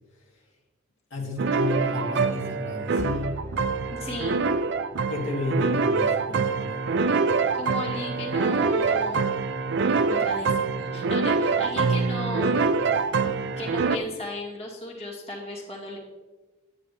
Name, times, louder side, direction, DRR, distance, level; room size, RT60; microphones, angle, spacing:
voice 1, 1.1-3.4 5.1-6.9, left 1 dB, 75° left, -3 dB, 2.2 m, -31 dB
sound 1, 1.4-14.0, right 4 dB, 60° right, 0.4 m, -25 dB
sound 2, 3.0-5.1, left 1 dB, 15° left, 0.4 m, -39 dB
voice 2, 3.9-4.4 7.5-9.2 10.1-12.6 13.6-16.0, left 1 dB, 30° left, -3 dB, 2.1 m, -35 dB
11.5 x 9.3 x 3.3 m, 1.2 s
head